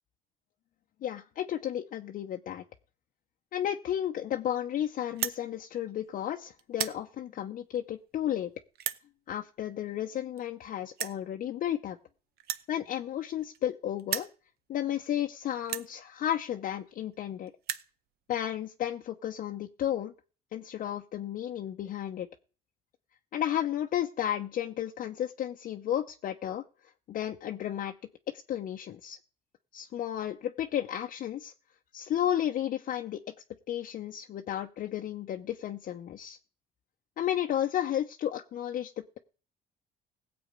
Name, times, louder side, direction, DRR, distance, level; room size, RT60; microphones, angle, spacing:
voice 1, 1.0-2.6 3.5-8.5 9.3-12.0 12.7-14.3 14.7-17.5 18.3-20.1 20.5-22.3 23.3-26.6 27.1-27.9 28.5-29.2 29.7-31.5 31.9-33.2 33.7-36.4 37.2-38.9, left 11 dB, 55° left, 3 dB, 0.7 m, -33 dB
sound 1, 5.1-5.4 6.1-6.3 6.6-7.0 7.8-7.9 8.8-9.0 10.1-10.2 10.4-10.5 11.0-11.2 12.4-13.7 14.0-14.4 15.1-15.2 15.6-15.9 16.8-16.9 17.1-17.2 17.5-17.9, right 11 dB, 70° right, 0.8 m, -35 dB
17.0 x 7.8 x 5.2 m, 0.40 s
cardioid pair, 110°, 17 cm